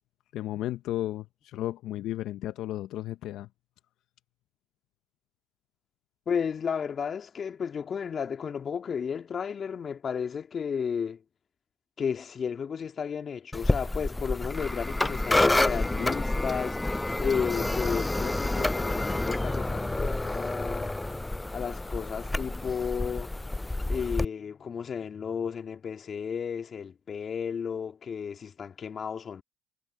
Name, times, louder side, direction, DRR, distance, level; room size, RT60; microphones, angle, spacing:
voice 1, 0.3-3.5, left 14 dB, 65° left, 0.7 m, -34 dB
voice 2, 6.3-11.2 12.0-20.9 21.5-23.3 23.9-29.4, left 7 dB, 40° left, 2.3 m, -33 dB
sound 1, 13.5-24.2, left 2 dB, 10° left, 0.3 m, -28 dB
supercardioid pair, 75°, 0 cm